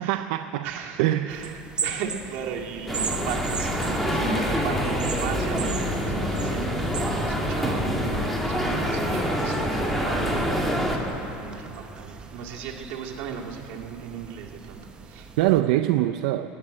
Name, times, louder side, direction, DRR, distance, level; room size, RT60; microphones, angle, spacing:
voice 1, 0.0-0.7 1.0-1.3 15.4-16.5, right 14 dB, 85° right, 8 dB, 0.4 m, -23 dB
voice 2, 0.6-1.5 1.8-14.8 15.1-15.3, right 7 dB, 65° right, -1 dB, 2.0 m, -36 dB
sound 1, 1.3-15.6, right 5 dB, 25° right, 1.0 m, -39 dB
sound 2, 2.9-11.0, equal, 5° left, 1.9 m, -26 dB
18.0 x 7.6 x 9.7 m, 3.0 s
cardioid pair, 140°, 4 cm